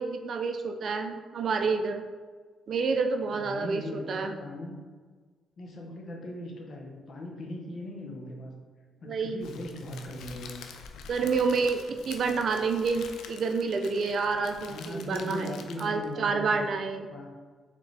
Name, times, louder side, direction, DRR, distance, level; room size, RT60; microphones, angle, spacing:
voice 1, 0.0-2.0 2.7-3.8 4.1-4.4 9.1-9.5 11.1-17.1, right 4 dB, 55° right, 6 dB, 0.4 m, -28 dB
voice 2, 3.3-4.8 5.6-8.6 9.0-10.7 14.7-16.7 17.1-17.3, left 1 dB, 55° left, 0 dB, 0.9 m, -39 dB
Crackle, 9.4-16.1, left 6 dB, 80° left, 0.4 m, -47 dB
3.9 x 3.6 x 3.3 m, 1.5 s
cardioid pair, 90°, 0 cm